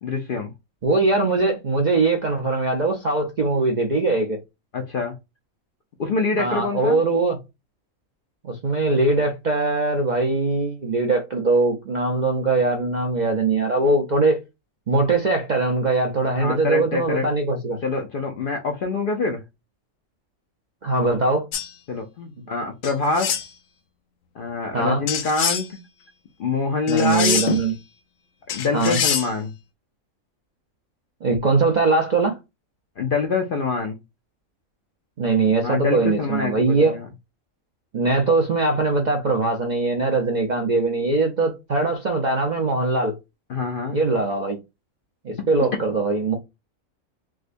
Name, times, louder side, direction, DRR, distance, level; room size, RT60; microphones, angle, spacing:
voice 1, 0.0-0.5 4.7-5.1 6.0-7.0 16.3-17.3 17.8-19.4 21.9-23.3 24.4-25.8 26.4-27.5 28.5-29.5 33.0-34.0 35.6-37.1 43.5-44.0, left 4 dB, 60° left, 0.6 m, -25 dB
voice 2, 0.8-4.4 6.4-7.4 8.4-14.4 14.9-17.8 20.8-21.5 24.7-25.0 26.9-27.7 28.7-29.0 31.2-32.4 35.2-37.0 37.9-43.1 43.9-44.6 45.2-46.3, right 3 dB, 50° right, 0.5 m, -21 dB
sound 1, 21.5-21.7 22.8-23.5 25.1-25.7 26.9-27.7 28.5-29.3, left 8 dB, 80° left, 1.1 m, -25 dB
4.7 x 2.1 x 2.5 m
omnidirectional pair, 1.4 m